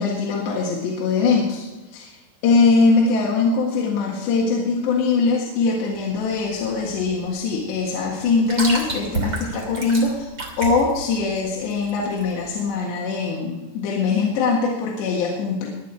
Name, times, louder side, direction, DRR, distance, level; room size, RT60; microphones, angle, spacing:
voice 1, 0.0-2.2 2.4-10.3 10.6-15.7, left 4 dB, 70° left, -2 dB, 3.8 m, -22 dB
sound 1, 5.9-12.6, right 2 dB, 30° right, 2.4 m, -31 dB
21.5 x 9.2 x 4.6 m, 1.2 s
omnidirectional pair, 5.6 m